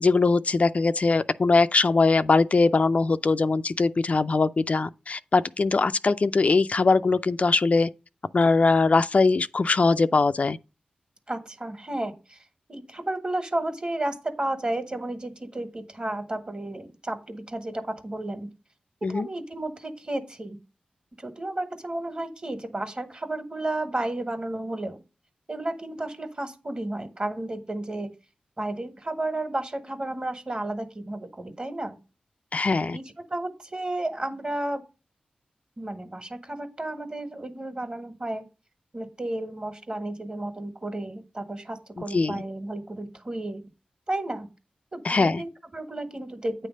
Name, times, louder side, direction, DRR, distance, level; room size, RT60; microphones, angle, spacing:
voice 1, 0.0-7.9 8.3-10.6 19.0-19.3 32.5-33.0 42.1-42.4 45.0-45.4, left 3 dB, 50° left, 0.3 m, -21 dB
voice 2, 11.3-12.4 12.7-18.5 19.1-20.6 21.2-25.0 25.5-28.1 28.6-32.0 32.9-33.0 33.3-34.8 35.8-38.5 38.9-43.6 44.1-44.5 44.9-46.7, right 1 dB, 35° right, 1.5 m, -32 dB
9.0 x 3.3 x 6.3 m
cardioid pair, 50°, 3 cm